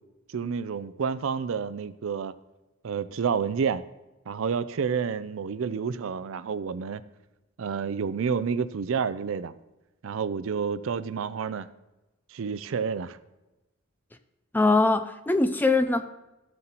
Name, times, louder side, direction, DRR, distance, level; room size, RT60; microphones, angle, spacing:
voice 1, 0.3-2.3 2.8-3.8 4.3-7.0 7.6-9.5 10.0-11.7 12.3-13.2, right 6 dB, 65° right, 14 dB, 0.4 m, -29 dB
voice 2, 14.5-16.0, left 3 dB, 10° left, 9 dB, 0.3 m, -22 dB
13.5 x 7.6 x 2.9 m, 1.0 s
head